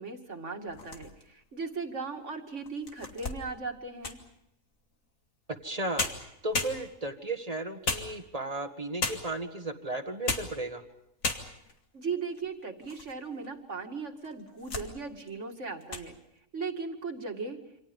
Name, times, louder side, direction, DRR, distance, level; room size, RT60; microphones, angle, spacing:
voice 1, 0.0-4.2 11.9-16.1 16.5-17.6, right 4 dB, 55° right, 4 dB, 2.6 m, -37 dB
sound 1, 0.7-1.4 2.0-2.1 2.7-4.3 5.6-5.7 6.0-7.2 7.8-8.5 9.0-9.5 10.1-10.6 10.9-11.0 11.2-11.8 12.3-13.1 13.4-13.5 14.2-14.9 15.3-15.5 15.8-16.1, left 3 dB, 70° left, 2.5 m, -35 dB
voice 2, 5.5-6.1 6.4-10.8, right 2 dB, 25° right, 6 dB, 1.9 m, -35 dB
28.5 x 26.5 x 5.4 m, 0.80 s
omnidirectional pair, 1.5 m